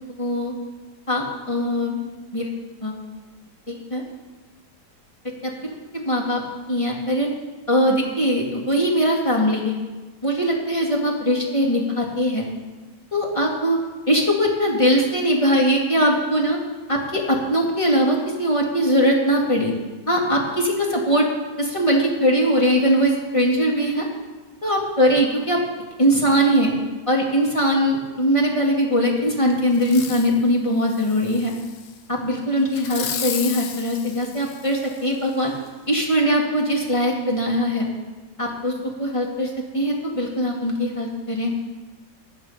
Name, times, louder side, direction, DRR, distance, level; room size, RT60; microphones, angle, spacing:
voice 1, 0.2-0.5 1.1-2.0 2.3-2.5 2.8-2.9 3.7-4.0 5.6-6.4 6.7-7.3 7.7-9.8 10.2-12.5 13.1-13.8 14.1-16.6 16.9-19.7 20.1-21.3 21.6-24.1 24.6-25.6 26.0-26.7 27.1-31.5 32.1-35.5 35.9-37.9 38.4-38.7 39.0-41.5, equal, 20° left, -1 dB, 1.9 m, -21 dB
Fireworks, 29.7-30.4 30.9-31.9 32.7-35.1 35.7-35.8, left 8 dB, 70° left, 1.3 m, -34 dB
13.5 x 8.3 x 5.5 m, 1.2 s
omnidirectional pair, 1.8 m